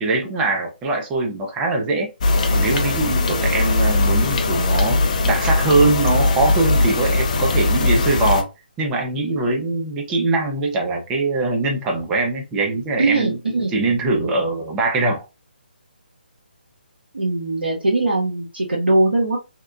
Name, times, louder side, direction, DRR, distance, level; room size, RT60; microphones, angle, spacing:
voice 1, 0.0-2.1 2.5-5.0 5.3-8.5 8.8-13.4 13.7-15.3, right 3 dB, 15° right, 0.5 m, -22 dB
sound 1, 2.2-8.4, left 2 dB, 40° left, 0.4 m, -19 dB
voice 2, 13.0-13.9 17.1-19.4, right 2 dB, 75° right, 1.0 m, -20 dB
2.8 x 2.1 x 2.4 m
figure-of-eight pair, 145°, 6 cm